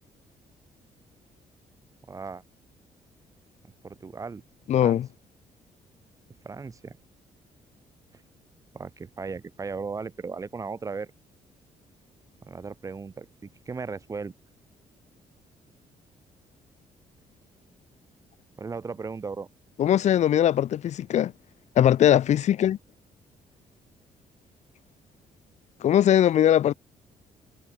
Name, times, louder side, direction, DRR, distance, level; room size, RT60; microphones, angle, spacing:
voice 1, 2.1-2.4 3.6-4.4 4.8-5.0 6.4-7.0 8.7-11.1 12.4-14.3 18.6-19.5, right 4 dB, 25° right, 4.0 m, -36 dB
voice 2, 4.7-5.1 19.8-21.3 21.8-22.8 25.8-26.7, left 11 dB, 60° left, 2.6 m, -20 dB
cardioid pair, 150°, 13 cm